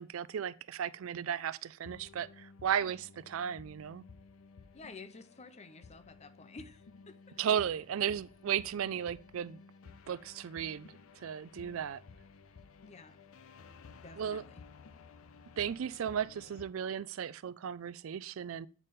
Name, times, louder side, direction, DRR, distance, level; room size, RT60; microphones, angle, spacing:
voice 1, 0.0-4.0 7.4-9.6 10.1-10.9 11.2-12.0 14.2-14.4 15.6-18.7, right 8 dB, 75° right, 0.4 m, -35 dB
sound 1, 1.8-16.7, left 4 dB, 80° left, 0.5 m, -55 dB
voice 2, 4.7-7.4 12.8-13.2 14.0-14.6, left 3 dB, 30° left, 0.6 m, -51 dB
8.2 x 4.1 x 3.6 m
head